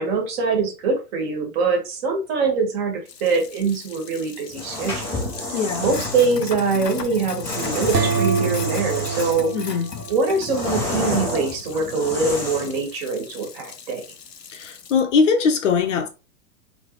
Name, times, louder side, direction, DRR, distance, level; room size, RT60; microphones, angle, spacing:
voice 1, 0.0-9.8 10.1-14.0, right 4 dB, 40° right, 1.5 m, -24 dB
Sink (filling or washing), 3.1-15.0, left 5 dB, 85° left, 0.7 m, -38 dB
sound 1, 4.5-6.4 7.4-9.5 9.9-12.8, left 2 dB, 5° left, 0.4 m, -29 dB
voice 2, 5.5-5.9 9.5-9.9 14.5-16.1, left 5 dB, 50° left, 0.7 m, -21 dB
sound 2, 7.9-10.7, right 5 dB, 85° right, 0.8 m, -25 dB
3.9 x 3.2 x 3.0 m
figure-of-eight pair, 105°, 47 cm